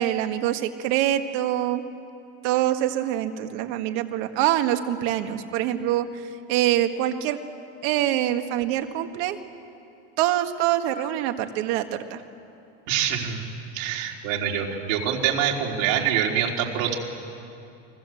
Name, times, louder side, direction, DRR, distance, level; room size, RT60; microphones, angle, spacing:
voice 1, 0.0-1.8 2.4-6.1 6.5-7.4 7.8-9.4 10.2-12.2, right 12 dB, 55° right, 7 dB, 1.8 m, -24 dB
voice 2, 12.9-13.5 13.7-16.9, right 9 dB, 70° right, 0 dB, 4.2 m, -25 dB
29.5 x 21.5 x 7.8 m, 2.7 s
supercardioid pair, 155°, 40 cm